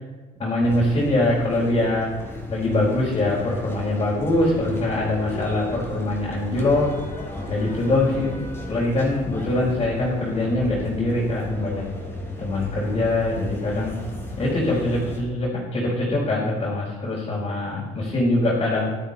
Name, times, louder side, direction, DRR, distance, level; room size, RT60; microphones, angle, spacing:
voice 1, 0.4-2.1 2.5-7.0 7.5-11.8 12.4-14.0 14.4-19.0, left 2 dB, 35° left, -7 dB, 4.5 m, -23 dB
sound 1, 0.6-15.2, left 1 dB, 15° left, 3.8 m, -35 dB
13.0 x 12.0 x 4.2 m, 1.3 s
cardioid pair, 110°, 17 cm